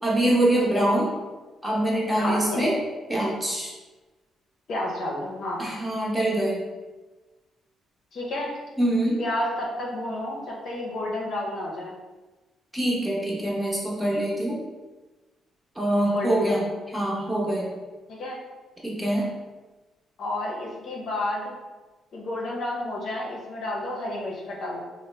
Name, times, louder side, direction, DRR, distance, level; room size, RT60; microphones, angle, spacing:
voice 1, 0.0-1.1 1.6-2.7 3.1-3.7 5.6-6.6 8.8-9.2 12.7-14.6 15.8-16.7 16.9-17.7 18.8-19.3, right 1 dB, 5° right, -4 dB, 0.8 m, -24 dB
voice 2, 0.6-0.9 2.1-2.7 4.7-5.6 8.1-8.5 9.2-11.9 16.1-16.6 18.1-18.4 20.2-21.5 22.1-24.8, left 1 dB, 65° left, -3 dB, 0.7 m, -30 dB
2.8 x 2.0 x 3.2 m, 1.2 s
cardioid pair, 90°, 0 cm